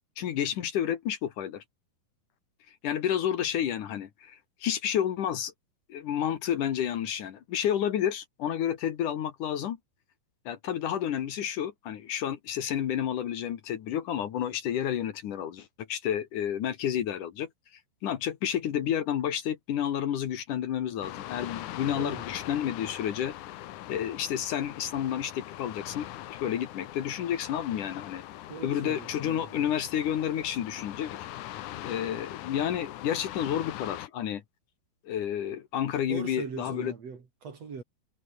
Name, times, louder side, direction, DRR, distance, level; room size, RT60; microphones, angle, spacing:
voice 1, 0.2-1.6 2.8-5.5 5.9-9.8 10.5-17.5 18.0-23.3 23.9-28.2 28.6-31.2 31.8-34.4 35.0-36.9, left 10 dB, 60° left, 2.6 m, -30 dB
sound 1, 21.0-34.1, left 14 dB, 75° left, 1.9 m, -41 dB
voice 2, 28.5-29.6 36.1-37.8, right 5 dB, 40° right, 3.6 m, -40 dB
omnidirectional pair, 4.8 m